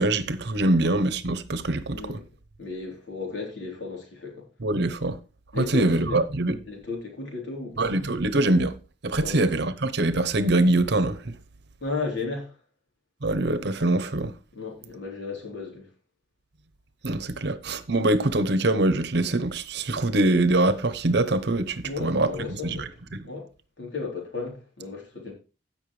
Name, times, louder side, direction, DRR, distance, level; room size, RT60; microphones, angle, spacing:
voice 1, 0.0-2.2 4.6-5.2 5.6-6.6 7.8-8.7 9.0-11.3 13.2-14.3 17.0-22.9, right 2 dB, 65° right, 0.9 m, -24 dB
voice 2, 1.9-2.2 2.6-4.4 5.5-6.2 6.7-8.0 9.2-9.4 11.8-12.6 14.5-15.9 19.7-19.8 21.8-22.9 23.2-23.5 23.8-25.3, left 4 dB, 75° left, 3.6 m, -34 dB
16.0 x 5.7 x 3.2 m
head